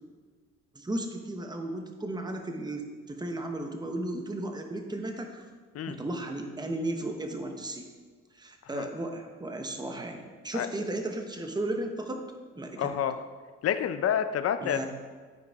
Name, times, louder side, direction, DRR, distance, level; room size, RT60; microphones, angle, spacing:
voice 1, 0.7-5.4 5.9-7.9 8.3-12.2 12.6-12.9 14.6-14.9, right 1 dB, 15° right, 4 dB, 1.0 m, -35 dB
voice 2, 12.8-13.2 13.6-14.9, left 9 dB, 55° left, 10 dB, 0.6 m, -28 dB
13.0 x 4.6 x 3.6 m, 1.5 s
cardioid pair, 90°, 30 cm